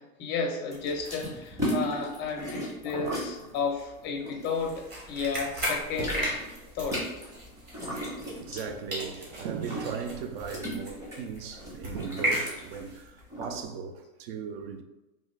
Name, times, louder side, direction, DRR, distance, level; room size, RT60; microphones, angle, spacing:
voice 1, 0.0-6.3 6.7-7.0, left 5 dB, 25° left, 0.5 m, -32 dB
sound 1, 0.7-5.2 5.5-13.6, equal, 10° right, 0.8 m, -36 dB
voice 2, 2.9-3.5 8.3-14.8, right 6 dB, 45° right, 0.5 m, -37 dB
sound 2, 4.5-8.7 8.9-13.0, equal, 25° right, 1.1 m, -35 dB
3.3 x 2.5 x 3.1 m
hypercardioid pair, 130°, 43 cm